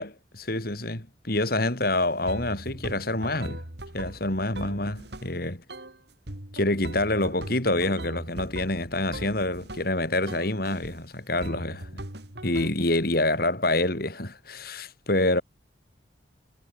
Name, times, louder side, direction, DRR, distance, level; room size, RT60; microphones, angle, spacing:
voice 1, 0.0-3.6 3.9-5.6 6.5-11.9 12.4-15.4, left 2 dB, 50° left, 3.8 m, -27 dB
sound 1, 1.8-1.9 2.3-5.3 5.7-6.0 6.3-9.9 10.3-11.0 11.4-12.7, right 1 dB, 60° right, 3.9 m, -39 dB
head